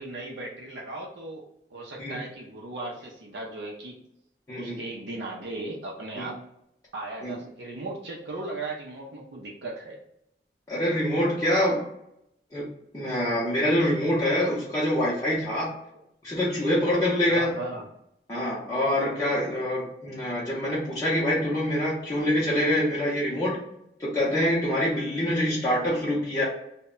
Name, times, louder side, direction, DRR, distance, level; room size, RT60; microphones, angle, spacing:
voice 1, 0.0-1.4 1.7-4.0 4.6-6.4 6.9-10.0 17.3-17.8, right 2 dB, 75° right, -3 dB, 0.5 m, -37 dB
voice 2, 4.5-4.8 6.2-6.3 7.2-7.3 10.7-11.8 12.5-15.8 16.2-17.8 18.3-23.6 24.0-26.4, left 1 dB, 20° left, -8 dB, 0.6 m, -25 dB
2.1 x 2.1 x 3.6 m, 0.78 s
head